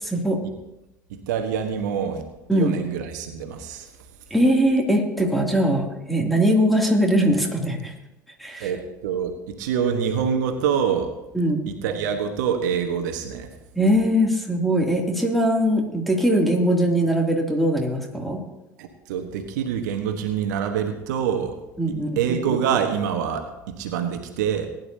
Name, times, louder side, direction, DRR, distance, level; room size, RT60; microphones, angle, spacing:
voice 1, 0.0-0.4 2.5-2.8 4.3-7.9 8.4-8.7 11.3-11.6 13.8-18.4 21.8-22.2, equal, ahead, 0 dB, 2.7 m, -21 dB
voice 2, 1.1-2.2 2.5-3.9 8.6-11.1 11.7-13.5 18.8-21.6 22.2-24.7, right 7 dB, 70° right, 6 dB, 1.2 m, -25 dB
19.5 x 10.5 x 2.8 m, 0.96 s
figure-of-eight pair, 70°, 10 cm